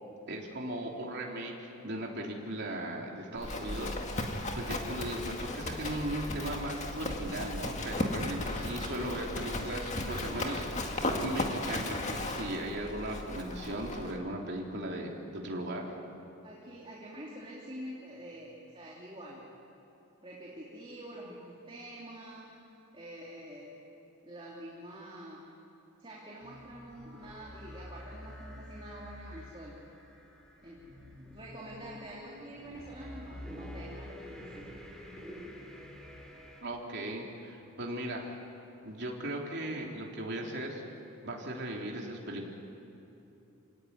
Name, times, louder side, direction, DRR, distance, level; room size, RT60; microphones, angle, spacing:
voice 1, 0.3-4.0 4.5-16.0 36.6-38.3 38.8-40.8 41.2-42.5, right 1 dB, 50° right, -1 dB, 3.5 m, -37 dB
Livestock farm animals working animals, 3.4-14.2, left 1 dB, 30° left, 2.0 m, -35 dB
voice 2, 16.4-19.5 20.2-22.6 22.9-23.7 24.2-25.4 26.0-29.8 30.6-34.7, right 1 dB, 25° right, -5 dB, 3.0 m, -46 dB
sound 1, 26.4-36.6, equal, ahead, 3.2 m, -48 dB
28.5 x 17.5 x 9.7 m, 2.9 s
head